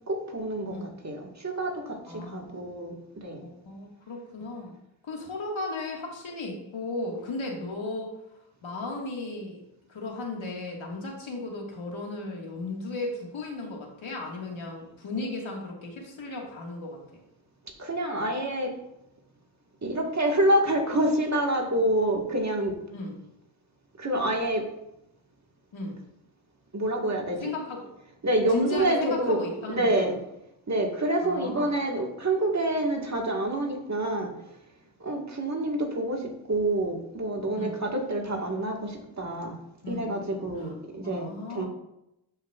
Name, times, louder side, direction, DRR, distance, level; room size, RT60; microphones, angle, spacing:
voice 1, 0.1-3.4 17.6-18.7 19.8-22.8 24.0-24.7 26.7-27.5 28.2-29.4 29.7-30.2 30.7-34.3 35.0-39.6 39.9-41.6, right 1 dB, 35° right, 1 dB, 1.7 m, -27 dB
voice 2, 2.1-2.5 3.4-4.7 5.0-8.2 8.6-9.6 9.9-17.0 22.9-23.2 25.7-26.0 27.4-27.8 28.5-30.1 31.2-31.7 37.6-37.8 39.8-40.0 40.6-40.7 41.0-41.6, left 2 dB, 80° left, 0 dB, 1.9 m, -35 dB
12.0 x 5.4 x 2.4 m, 0.85 s
cardioid pair, 65°, 47 cm